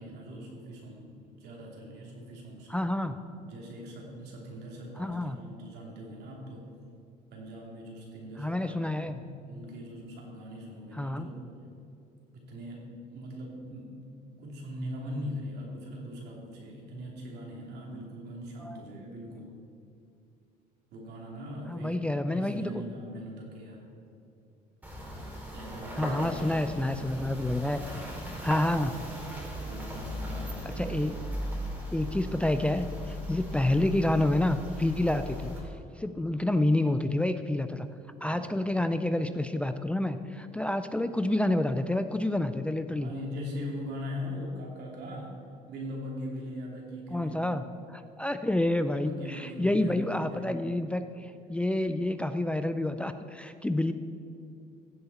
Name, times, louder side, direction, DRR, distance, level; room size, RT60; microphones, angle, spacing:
voice 1, 0.0-2.8 3.4-6.7 7.3-11.5 12.3-14.0 14.4-19.5 20.9-23.8 25.5-26.8 29.6-31.7 38.2-38.6 42.9-45.3 45.7-47.6 49.0-50.7, equal, 75° right, -1 dB, 2.9 m, -41 dB
voice 2, 2.7-3.2 5.0-5.4 8.4-9.2 11.0-11.3 18.6-18.8 21.7-22.8 26.0-27.8 28.4-28.9 30.8-31.1 31.9-35.5 35.9-37.9 38.2-43.1 47.1-47.6 47.9-53.9, left 1 dB, 5° left, 9 dB, 0.4 m, -28 dB
tires snow ice slow, 24.8-35.6, equal, 10° right, 3.0 m, -38 dB
15.5 x 7.8 x 4.2 m, 2.6 s
cardioid pair, 110°, 17 cm